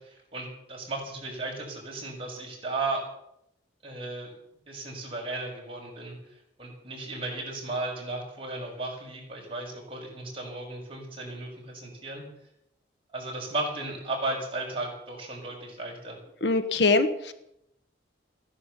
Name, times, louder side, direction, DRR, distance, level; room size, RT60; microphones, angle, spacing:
voice 1, 0.0-3.0 3.8-4.3 4.7-6.1 6.6-12.2 13.1-16.2, right 2 dB, 30° right, -2 dB, 6.3 m, -35 dB
voice 2, 16.4-17.3, left 3 dB, 65° left, 9 dB, 1.3 m, -23 dB
15.5 x 11.0 x 8.3 m, 0.79 s
head